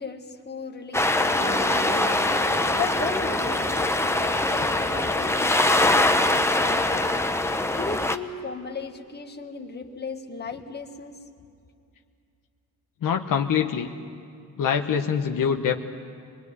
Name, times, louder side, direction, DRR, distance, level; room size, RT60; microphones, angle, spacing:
voice 1, 0.0-2.1 2.4-3.7 4.0-7.1 7.8-11.2, left 4 dB, 30° left, 4 dB, 1.8 m, -36 dB
sound 1, 0.9-8.2, left 2 dB, 10° left, 0.9 m, -23 dB
Mallet percussion, 1.4-10.1, equal, 35° right, 2.1 m, -42 dB
voice 2, 13.0-13.9 14.6-15.8, left 7 dB, 75° left, 4 dB, 1.1 m, -24 dB
24.5 x 20.0 x 9.6 m, 2.4 s
cardioid pair, 100°, 33 cm